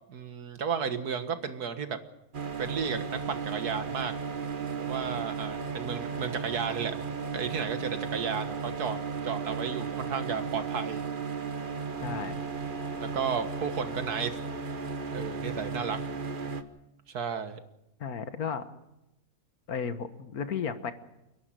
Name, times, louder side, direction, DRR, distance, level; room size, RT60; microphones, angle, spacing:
voice 1, 0.0-2.0 2.6-4.1 4.8-7.0 7.3-11.0 12.1-12.4 13.0-14.4 15.1-16.0 17.1-17.6, right 6 dB, 85° right, 9 dB, 2.0 m, -33 dB
sound 1, 2.3-16.6, right 5 dB, 35° right, 1.2 m, -35 dB
voice 2, 12.0-12.4 18.0-18.7 19.7-20.9, left 6 dB, 70° left, 10 dB, 1.8 m, -34 dB
29.5 x 11.5 x 9.1 m, 0.90 s
omnidirectional pair, 1.6 m